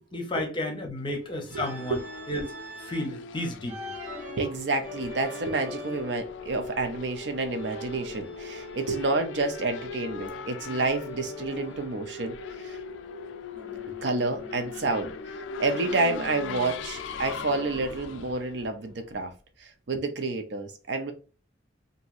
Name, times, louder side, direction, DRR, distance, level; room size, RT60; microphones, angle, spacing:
voice 1, 0.1-2.0 2.3-2.5 2.8-3.8, left 1 dB, 25° left, 0.6 m, -32 dB
Race car auto racing / Accelerating revving vroom, 1.2-19.4, left 4 dB, 75° left, 0.3 m, -39 dB
Organ, 1.5-3.1 3.7-6.3 7.6-9.3 9.7-12.0 13.5-15.3 15.7-18.4, equal, 40° right, 0.8 m, -45 dB
voice 2, 4.4-12.4 12.6-12.8 14.0-19.3 19.6-21.1, right 3 dB, 60° right, 0.5 m, -29 dB
2.9 x 2.6 x 2.4 m
head